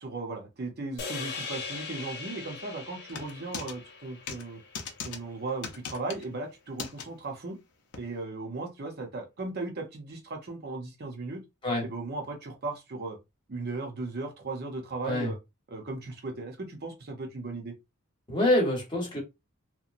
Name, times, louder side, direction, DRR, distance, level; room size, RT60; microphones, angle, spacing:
voice 1, 0.0-4.6 5.0-7.6 8.0-11.4 11.8-13.2 13.5-15.4 15.7-17.7, right 3 dB, 45° right, 0.6 m, -37 dB
sound 1, 1.0-5.4, left 4 dB, 50° left, 0.6 m, -40 dB
sound 2, 3.1-3.7 4.3-4.4 4.7-5.2 5.6-6.3 6.8-7.0 7.9-8.0, left 6 dB, 90° left, 0.6 m, -38 dB
voice 2, 18.3-19.2, left 1 dB, 20° left, 0.9 m, -26 dB
2.8 x 2.1 x 2.5 m
head